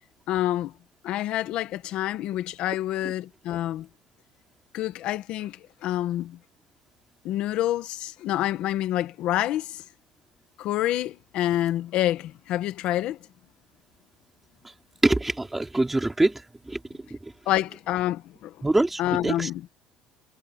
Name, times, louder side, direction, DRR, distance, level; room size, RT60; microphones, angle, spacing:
voice 1, 0.3-0.7 1.0-3.9 4.7-6.4 7.2-9.8 10.6-13.2 17.5-18.5 19.0-19.6, left 13 dB, 50° left, 1.3 m, -27 dB
voice 2, 15.0-16.8 17.1-17.3 18.6-19.5, right 2 dB, 5° right, 2.8 m, -24 dB
cardioid pair, 175°, 2 cm